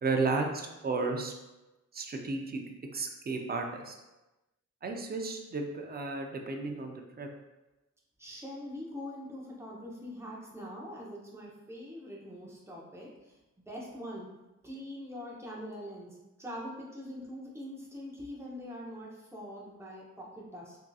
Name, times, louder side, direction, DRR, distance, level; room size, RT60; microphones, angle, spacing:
voice 1, 0.0-1.3 1.9-2.6 2.9-4.0 4.8-7.3, right 3 dB, 30° right, 3 dB, 0.4 m, -33 dB
voice 2, 8.2-13.4 13.7-14.3 14.6-20.8, equal, 10° right, -4 dB, 0.7 m, -43 dB
3.5 x 2.7 x 2.3 m, 1.0 s
cardioid pair, 95°, 31 cm